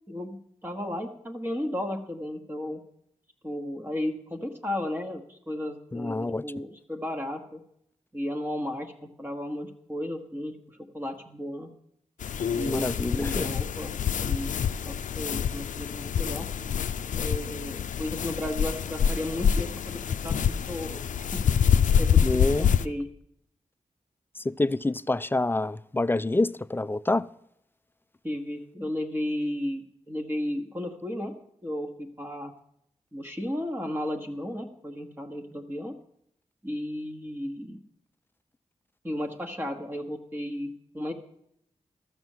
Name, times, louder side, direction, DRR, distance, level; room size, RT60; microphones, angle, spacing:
voice 1, 0.1-2.8 3.4-7.6 8.1-11.7 12.5-13.9 14.2-14.6 14.8-16.5 17.1-21.4 22.0-23.1 28.2-31.3 31.6-32.5 33.1-36.0 36.6-37.8 39.0-41.1, left 1 dB, 15° right, 1.2 m, -34 dB
voice 2, 5.9-6.4 12.7-13.5 22.2-22.7 24.5-27.3, left 2 dB, 15° left, 0.3 m, -27 dB
sound 1, 12.2-22.9, left 8 dB, 90° left, 0.4 m, -26 dB
13.0 x 6.1 x 7.2 m
wide cardioid pair, 70°, 13 cm